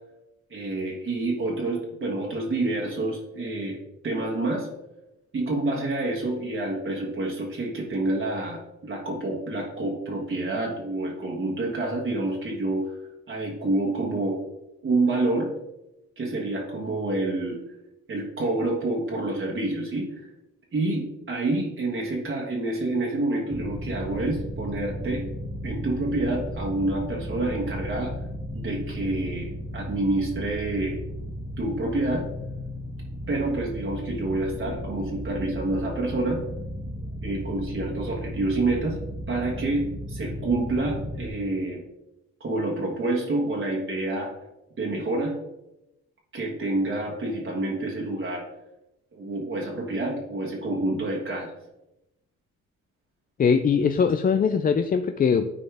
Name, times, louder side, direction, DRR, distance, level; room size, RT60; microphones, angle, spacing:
voice 1, 0.5-3.8 4.0-4.7 5.3-13.0 13.3-14.4 14.8-15.5 16.2-17.6 18.1-20.3 20.7-25.3 25.6-28.1 28.5-31.0 31.6-32.3 33.3-36.4 37.2-39.0 39.3-41.8 42.4-44.4 44.8-45.4 46.3-48.4 49.1-51.5, right 2 dB, 40° right, -3 dB, 1.6 m, -28 dB
sound 1, 23.5-41.3, equal, 15° right, 1.5 m, -35 dB
voice 2, 53.4-55.5, left 6 dB, 30° left, 8 dB, 0.4 m, -21 dB
9.9 x 4.2 x 3.5 m, 0.93 s
cardioid pair, 90°, 30 cm